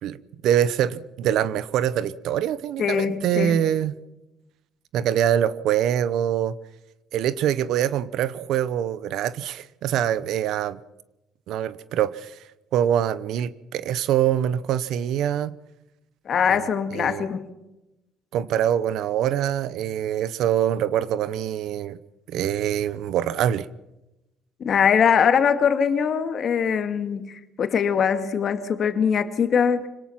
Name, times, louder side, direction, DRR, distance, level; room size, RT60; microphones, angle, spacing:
voice 1, 0.4-3.9 4.9-6.5 7.1-10.8 11.5-12.3 12.7-15.5 16.9-17.3 18.3-22.0 22.3-23.7, right 10 dB, 70° right, 0.9 m, -24 dB
voice 2, 2.8-3.6 16.3-17.5 24.6-29.9, left 7 dB, 45° left, 2.2 m, -22 dB
25.5 x 18.0 x 5.9 m
cardioid pair, 105°, 0 cm